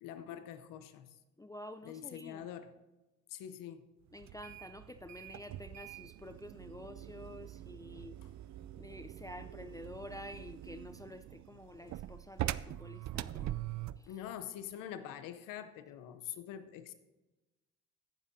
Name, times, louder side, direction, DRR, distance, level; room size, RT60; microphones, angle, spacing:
voice 1, 0.0-1.2 1.8-2.7 3.3-3.9 14.1-16.9, left 10 dB, 90° left, 0.8 m, -45 dB
voice 2, 1.4-2.5 4.1-8.2 8.8-13.6 14.0-14.2, left 1 dB, 10° left, 0.5 m, -49 dB
sound 1, 4.2-14.1, right 14 dB, 60° right, 0.4 m, -43 dB
17.0 x 7.3 x 2.7 m
supercardioid pair, 60°, 32 cm